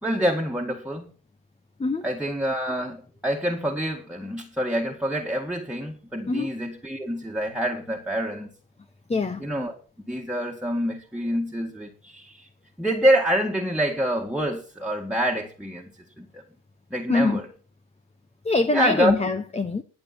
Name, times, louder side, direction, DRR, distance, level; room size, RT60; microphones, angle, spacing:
voice 1, 0.0-1.1 2.0-8.5 9.4-9.8 10.1-12.5 12.8-15.9 16.2-16.4 16.9-17.5 18.7-19.1, equal, ahead, 0 dB, 1.9 m, -26 dB
voice 2, 9.1-9.4 17.1-17.4 18.4-19.8, left 3 dB, 15° left, 10 dB, 0.8 m, -23 dB
20.5 x 6.9 x 4.3 m, 0.40 s
supercardioid pair, 70°, 46 cm